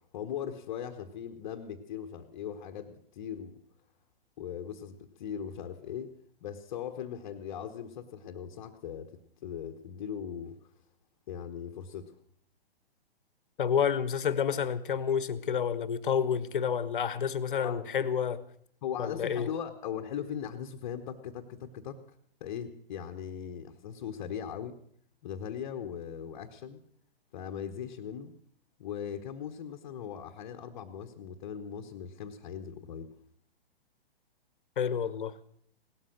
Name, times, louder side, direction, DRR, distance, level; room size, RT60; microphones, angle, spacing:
voice 1, 0.1-3.6 4.4-6.1 6.4-10.6 11.3-12.1 17.5-17.8 18.8-22.0 22.4-24.8 25.2-26.8 27.3-28.3 28.8-33.1, left 8 dB, 35° left, 1.1 m, -39 dB
voice 2, 13.6-18.4 19.0-19.5 34.8-35.4, left 7 dB, 55° left, 1.1 m, -29 dB
17.5 x 13.0 x 6.4 m
figure-of-eight pair, 125°, 30 cm